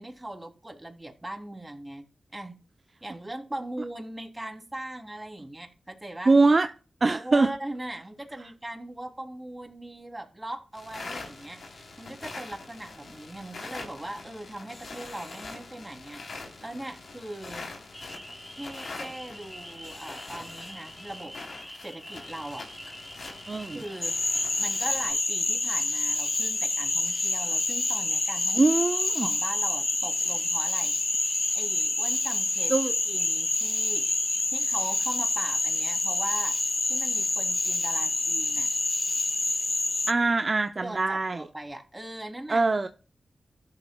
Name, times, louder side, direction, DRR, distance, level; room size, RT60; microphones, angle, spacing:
voice 1, 0.0-2.0 2.3-2.6 3.0-6.4 7.1-17.7 18.5-21.3 21.8-22.7 23.7-24.2 24.6-28.6 29.2-31.3 31.5-32.7 33.1-34.1 34.5-36.6 36.9-38.7 40.8-42.6, right 1 dB, 20° right, 2.9 m, -40 dB
voice 2, 6.3-6.7 7.0-7.5 23.5-23.8 28.5-29.3 32.7-32.9 40.1-41.5 42.5-42.9, right 3 dB, 50° right, 0.6 m, -23 dB
sound 1, 10.7-25.1, left 3 dB, 75° left, 3.4 m, -43 dB
sound 2, 17.9-34.5, equal, 5° left, 1.4 m, -45 dB
Cricket / Frog, 24.0-40.1, left 2 dB, 40° left, 0.5 m, -27 dB
13.5 x 11.5 x 2.3 m
cardioid pair, 45°, 0 cm